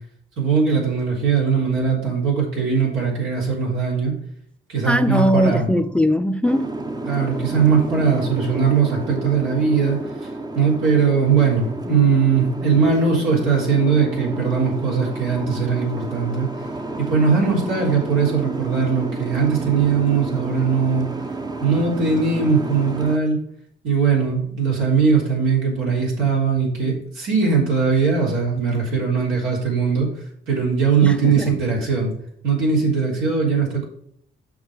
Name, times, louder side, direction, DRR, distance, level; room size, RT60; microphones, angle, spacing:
voice 1, 0.4-4.1 4.7-5.7 7.0-10.0 10.5-16.5 17.0-21.1 21.6-23.4 23.8-30.1 30.5-32.1 32.4-33.9, right 5 dB, 85° right, 3.8 m, -20 dB
voice 2, 4.9-6.7 31.0-31.5, equal, 5° left, 0.4 m, -20 dB
Boat Water vehicle, 6.4-23.2, right 2 dB, 20° right, 0.7 m, -30 dB
7.3 x 5.8 x 5.1 m
cardioid pair, 90°, 20 cm